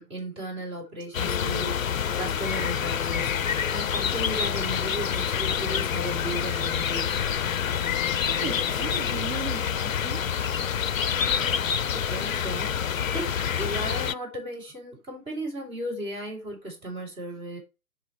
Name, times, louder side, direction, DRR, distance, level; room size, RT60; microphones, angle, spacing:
voice 1, 0.0-7.2 11.1-17.6, right 1 dB, 10° right, 3.5 m, -36 dB
sound 1, 1.1-14.1, left 8 dB, 65° left, 0.6 m, -27 dB
voice 2, 7.7-10.2, right 6 dB, 40° right, 2.3 m, -38 dB
7.6 x 5.2 x 4.5 m
figure-of-eight pair, 135°, 44 cm